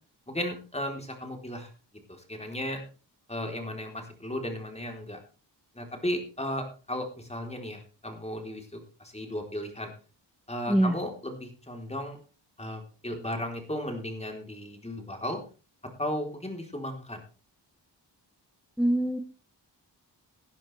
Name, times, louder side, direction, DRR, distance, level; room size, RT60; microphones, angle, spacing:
voice 1, 0.3-1.7 2.1-2.8 3.3-5.2 5.8-9.9 10.5-12.2 12.6-15.4 16.0-17.2, left 1 dB, 15° left, 3 dB, 3.7 m, -35 dB
voice 2, 18.8-19.2, right 1 dB, ahead, 10 dB, 0.9 m, -23 dB
18.0 x 10.5 x 3.4 m, 0.35 s
cardioid pair, 65°, 43 cm